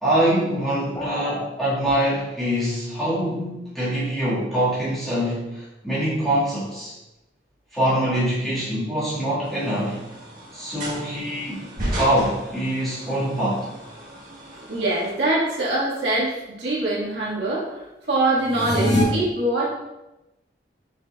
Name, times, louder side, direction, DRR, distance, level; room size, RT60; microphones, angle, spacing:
voice 1, 0.0-6.9 7.7-10.0 10.5-11.7 11.9-13.7, right 1 dB, ahead, -11 dB, 1.6 m, -24 dB
sound 1, 0.9-1.5, left 1 dB, 20° left, 0.4 m, -31 dB
sound 2, 9.4-15.1, right 1 dB, 50° right, 1.4 m, -35 dB
voice 2, 14.7-17.7 18.1-19.7, right 2 dB, 75° right, -6 dB, 1.6 m, -23 dB
sound 3, 18.4-19.0, left 1 dB, 80° left, 1.4 m, -22 dB
5.8 x 4.0 x 2.3 m, 0.97 s
head